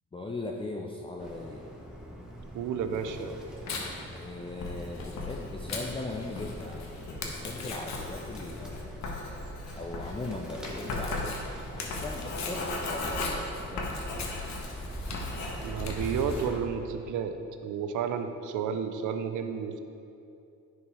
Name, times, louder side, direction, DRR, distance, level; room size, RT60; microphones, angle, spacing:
voice 1, 0.1-1.7 4.1-9.1 9.8-11.4 11.7-14.3, left 2 dB, 20° left, 0 dB, 0.6 m, -39 dB
Bird, 1.2-16.6, equal, ahead, 1.4 m, -43 dB
voice 2, 2.5-3.4 15.6-17.4 17.6-19.8, right 7 dB, 80° right, 7 dB, 0.7 m, -31 dB
Tearing, 2.9-16.5, left 4 dB, 65° left, 1.3 m, -42 dB
Writing, 4.6-14.8 15.1-15.5, left 2 dB, 80° left, 1.5 m, -37 dB
10.5 x 4.7 x 4.8 m, 2.7 s
cardioid pair, 90°, 30 cm